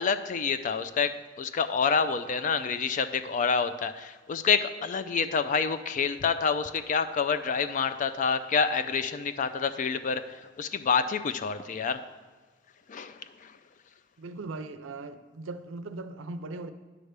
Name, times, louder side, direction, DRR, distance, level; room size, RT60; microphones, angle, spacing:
voice 1, 0.0-12.0 12.9-13.5, left 6 dB, 40° left, 0.3 m, -28 dB
voice 2, 14.2-16.7, right 3 dB, 80° right, 0.5 m, -39 dB
9.6 x 3.4 x 6.5 m
head